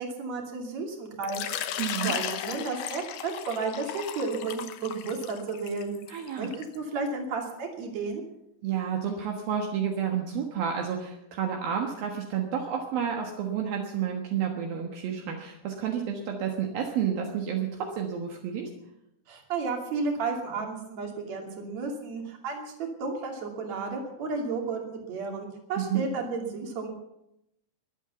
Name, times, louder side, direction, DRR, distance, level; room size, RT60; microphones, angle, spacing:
voice 1, 0.0-1.4 2.0-5.9 6.4-8.2 19.3-22.7 23.0-26.9, right 4 dB, 45° right, 2 dB, 3.7 m, -33 dB
Water / Liquid, 1.2-6.8, left 10 dB, 70° left, 2.3 m, -36 dB
voice 2, 1.8-2.1 6.1-6.5 8.6-18.7 25.8-26.0, right 8 dB, 70° right, 1 dB, 3.2 m, -30 dB
22.5 x 8.3 x 7.0 m, 0.82 s
omnidirectional pair, 4.5 m